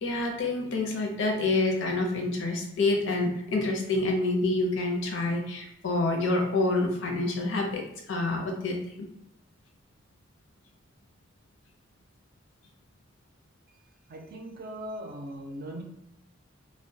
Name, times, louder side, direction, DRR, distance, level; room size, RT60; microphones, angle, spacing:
voice 1, 0.0-7.8 8.1-9.1, left 2 dB, 65° left, 1 dB, 0.5 m, -27 dB
voice 2, 14.1-15.8, equal, 50° right, 2 dB, 0.4 m, -39 dB
2.2 x 2.1 x 2.6 m, 0.78 s
head